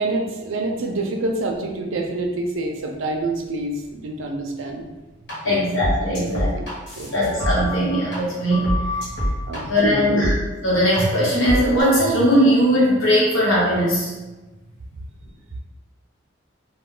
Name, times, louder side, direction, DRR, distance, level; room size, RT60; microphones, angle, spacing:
voice 1, 0.0-4.8 5.4-5.7 6.3-6.7 7.0-7.3 9.5-10.2, right 2 dB, 75° right, 2 dB, 0.4 m, -27 dB
sound 1, 5.3-5.4 5.8-8.2 8.5-9.6 10.2-10.3 10.9-11.0 11.5-11.8, equal, 60° left, 1.1 m, -25 dB
voice 2, 5.4-6.5 7.1-8.7 9.7-10.3 10.6-14.1, equal, 85° left, -6 dB, 1.1 m, -19 dB
2.3 x 2.2 x 3.7 m, 1.2 s
head